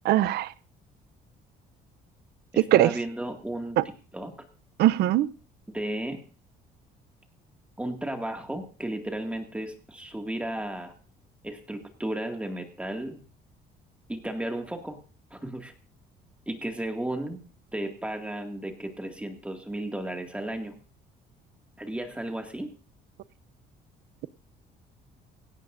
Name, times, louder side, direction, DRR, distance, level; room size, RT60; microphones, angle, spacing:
voice 1, 0.0-0.5 2.7-2.9 3.8-3.9 4.8-5.3, right 14 dB, 75° right, 17 dB, 0.6 m, -20 dB
voice 2, 2.5-3.8 4.1-4.3 5.7-6.2 7.8-10.9 11.4-13.2 14.1-15.0 15.3-15.7 16.5-17.4 17.7-20.7 21.8-22.7, right 1 dB, 5° right, 4 dB, 2.1 m, -34 dB
17.5 x 16.5 x 2.6 m, 0.37 s
cardioid pair, 110°, 17 cm